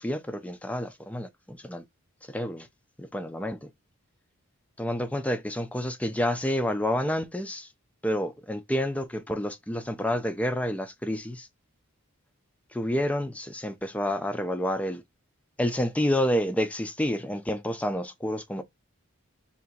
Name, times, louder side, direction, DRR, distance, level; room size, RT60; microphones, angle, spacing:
voice 1, 0.0-1.8 2.3-2.7 3.0-3.7 4.8-7.7 8.0-11.5 12.7-15.0 15.6-18.6, equal, 5° left, 0.4 m, -29 dB
2.8 x 2.5 x 3.7 m
head